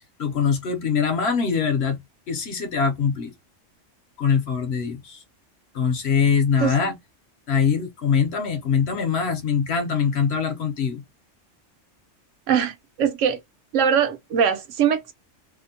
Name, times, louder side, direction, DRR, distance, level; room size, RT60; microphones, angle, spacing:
voice 1, 0.2-2.0 2.3-3.3 4.2-5.2 5.7-6.9 7.5-11.0, left 6 dB, 60° left, 0.9 m, -23 dB
voice 2, 12.5-13.4 13.7-15.1, right 8 dB, 75° right, 1.0 m, -22 dB
2.7 x 2.1 x 2.6 m
omnidirectional pair, 1.3 m